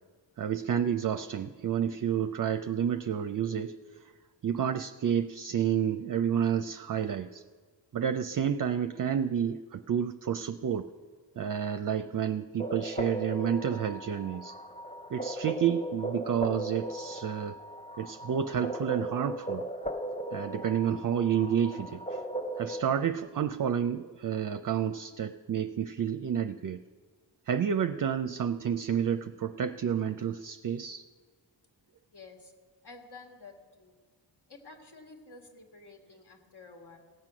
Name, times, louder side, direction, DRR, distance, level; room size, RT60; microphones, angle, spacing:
voice 1, 0.4-3.8 4.4-7.4 7.9-10.9 11.4-14.5 15.1-17.6 18.0-19.6 20.3-22.2 22.6-26.8 27.5-31.0, right 8 dB, 50° right, 10 dB, 0.5 m, -30 dB
sound 1, 12.6-22.9, right 1 dB, 15° left, 0.9 m, -37 dB
voice 2, 32.1-32.5 32.8-33.9 34.5-37.0, left 3 dB, 60° left, 3 dB, 2.1 m, -51 dB
18.0 x 7.5 x 6.2 m, 1.6 s
wide cardioid pair, 85°, 44 cm